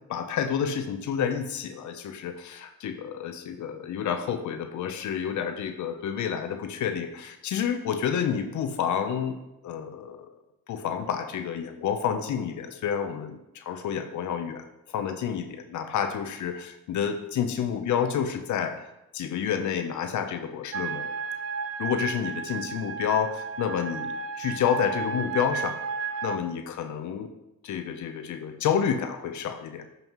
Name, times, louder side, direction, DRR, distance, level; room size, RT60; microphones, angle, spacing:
voice 1, 0.1-9.4 9.6-10.3 10.7-18.8 19.1-21.1 21.8-25.8 26.2-27.3 27.6-29.8, left 8 dB, 75° left, 7 dB, 0.8 m, -29 dB
sound 1, 20.7-26.4, right 5 dB, 45° right, 0.5 m, -33 dB
11.0 x 5.5 x 3.1 m, 0.90 s
cardioid pair, 90°, 30 cm